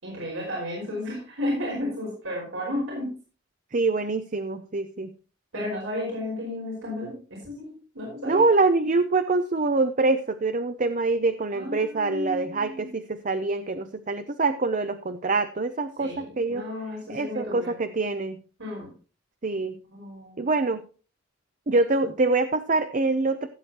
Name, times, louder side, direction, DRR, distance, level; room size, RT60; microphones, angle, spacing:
voice 1, 0.0-3.1 5.5-8.5 11.5-12.9 16.0-17.7 18.6-18.9 19.9-20.5, left 1 dB, 90° right, -2 dB, 5.0 m, -33 dB
voice 2, 3.7-5.1 8.2-16.6 17.1-18.4 19.4-19.8 20.4-20.8 21.7-23.5, right 3 dB, 40° right, 9 dB, 0.6 m, -25 dB
16.5 x 8.2 x 2.9 m, 0.37 s
head